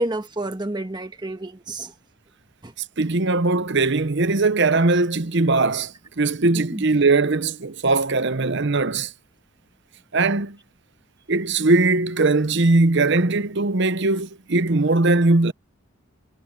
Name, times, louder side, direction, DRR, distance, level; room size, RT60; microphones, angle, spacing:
voice 1, 0.0-1.9 2.6-2.7 6.7-6.8, right 1 dB, 20° right, 1.5 m, -29 dB
voice 2, 3.0-9.1 10.1-10.6 11.3-15.5, right 3 dB, 55° right, 0.9 m, -20 dB
head